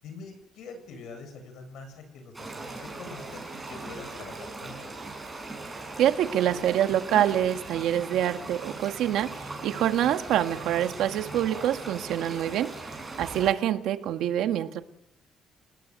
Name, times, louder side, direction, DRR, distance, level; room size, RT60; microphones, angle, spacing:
voice 1, 0.0-5.0, left 4 dB, 70° left, 8 dB, 7.9 m, -44 dB
sound 1, 2.3-13.5, right 3 dB, 10° right, 6.6 m, -39 dB
voice 2, 6.0-12.7 13.2-14.8, right 11 dB, 85° right, 8 dB, 1.7 m, -26 dB
30.0 x 19.0 x 8.2 m, 0.85 s
cardioid pair, 175°, 0 cm